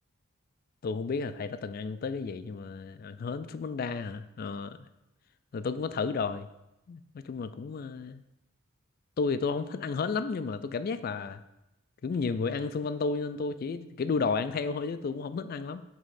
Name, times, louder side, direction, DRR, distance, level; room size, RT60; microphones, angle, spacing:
voice 1, 0.8-4.8 5.5-6.5 6.9-8.2 9.2-11.4 12.0-15.8, left 4 dB, 45° left, 12 dB, 0.3 m, -32 dB
5.2 x 3.5 x 5.7 m, 0.90 s
head